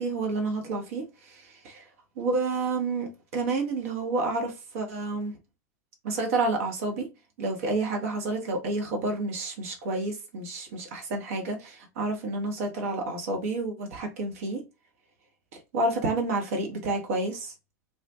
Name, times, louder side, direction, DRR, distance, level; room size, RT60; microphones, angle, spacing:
voice 1, 0.0-1.9 2.2-5.4 6.0-7.1 7.4-14.6 15.7-17.5, right 2 dB, 55° right, 0.9 m, -29 dB
2.4 x 2.3 x 2.6 m
figure-of-eight pair, 90°, 9 cm